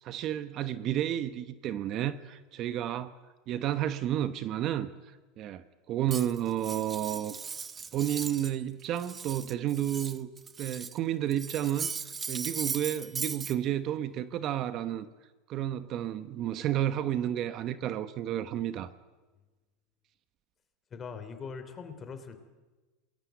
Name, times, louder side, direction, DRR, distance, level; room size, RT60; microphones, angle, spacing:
voice 1, 0.0-3.1 3.5-4.9 5.4-7.3 7.9-10.3 10.6-11.9 12.3-15.1 15.5-18.9, right 11 dB, 40° right, 1.1 m, -31 dB
Cutlery silverware, 6.1-8.6 8.8-11.0 11.3-13.5, right 5 dB, 20° right, 1.0 m, -38 dB
voice 2, 20.9-22.4, left 5 dB, 25° left, 3.2 m, -41 dB
27.5 x 21.0 x 8.3 m
supercardioid pair, 140°, 0 cm